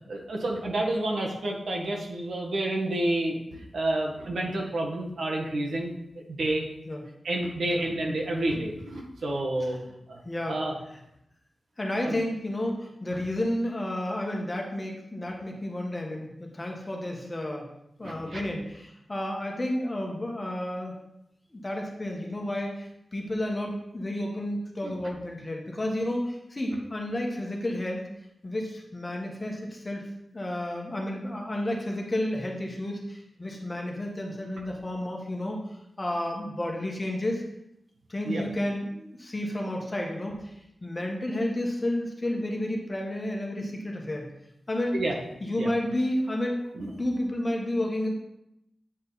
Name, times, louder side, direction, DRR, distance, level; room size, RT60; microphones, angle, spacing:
voice 1, 0.1-5.9 6.3-6.6 7.2-9.8 10.1-10.2 10.5-10.7 12.0-12.2 18.0-18.4 24.8-24.9 38.2-38.4 44.9-45.1 45.6-45.7 46.7-46.9, right 1 dB, 85° right, -1 dB, 1.7 m, -29 dB
voice 2, 10.2-10.6 11.8-17.7 18.0-20.9 21.5-28.0 28.4-30.0 30.3-37.4 38.1-44.3 44.7-45.0 45.4-46.6 47.0-48.1, left 1 dB, 20° left, 0 dB, 1.4 m, -31 dB
8.7 x 5.1 x 4.1 m, 0.81 s
wide cardioid pair, 150°, 0 cm